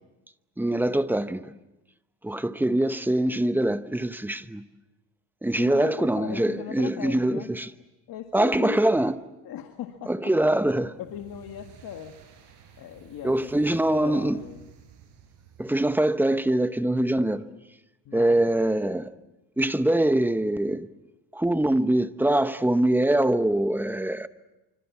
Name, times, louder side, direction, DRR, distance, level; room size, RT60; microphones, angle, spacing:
voice 1, 0.6-1.5 2.2-4.7 5.4-7.7 8.3-9.2 10.1-11.0 13.2-14.4 15.6-17.5 18.1-19.1 19.6-20.9 21.3-24.3, right 1 dB, 5° right, 0.9 m, -23 dB
voice 2, 5.6-7.5 8.1-8.8 9.4-10.1 11.0-12.2 12.8-14.6 18.1-18.4, left 10 dB, 50° left, 1.9 m, -38 dB
sound 1, 10.9-16.2, right 8 dB, 60° right, 7.6 m, -52 dB
25.5 x 25.5 x 7.3 m
cardioid pair, 125°, 45 cm